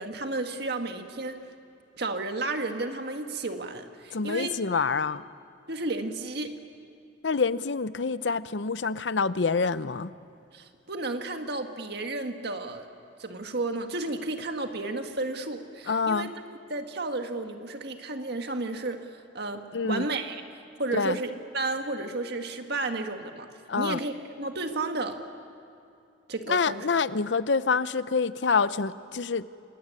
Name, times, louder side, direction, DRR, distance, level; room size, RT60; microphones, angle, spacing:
voice 1, 0.0-1.4 2.0-4.5 5.7-6.6 10.5-12.9 13.2-16.3 16.7-19.0 19.3-20.5 20.8-23.5 23.8-25.2 26.3-26.9, right 2 dB, 60° right, 6 dB, 1.7 m, -32 dB
voice 2, 4.1-5.2 7.2-10.1 15.9-16.3 19.7-20.1 20.9-21.2 23.7-24.0 26.5-29.5, left 4 dB, 75° left, 15 dB, 0.7 m, -26 dB
26.5 x 21.5 x 9.7 m, 2.6 s
head